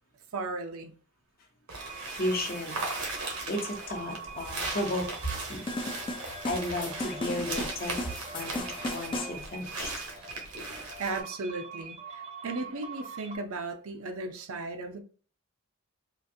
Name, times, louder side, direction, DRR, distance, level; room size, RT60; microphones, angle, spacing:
voice 1, 0.3-0.9 11.0-15.0, right 3 dB, 70° right, 0.6 m, -36 dB
sound 1, 1.7-11.2, right 3 dB, 85° right, 1.1 m, -38 dB
sound 2, 1.8-13.4, right 4 dB, 30° right, 0.7 m, -44 dB
voice 2, 2.2-2.8 3.3-5.8 6.1-9.9, left 1 dB, 40° left, 0.8 m, -34 dB
sound 3, 5.7-9.4, left 1 dB, 20° left, 0.4 m, -36 dB
3.8 x 2.5 x 2.6 m
head